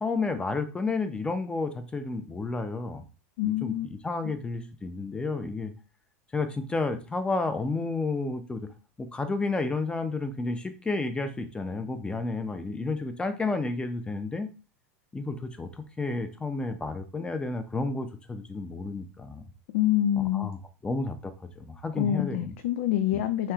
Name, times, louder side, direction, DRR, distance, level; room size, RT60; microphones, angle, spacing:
voice 1, 0.0-3.0 3.4-5.7 6.3-8.7 9.0-14.5 15.1-15.7 16.0-19.4 20.3-22.5 23.1-23.2, left 3 dB, 10° left, 9 dB, 0.7 m, -31 dB
voice 2, 3.4-3.9 19.7-20.5 22.0-23.5, left 12 dB, 65° left, 10 dB, 0.4 m, -26 dB
4.3 x 3.2 x 2.4 m, 0.33 s
hypercardioid pair, 95°, 8 cm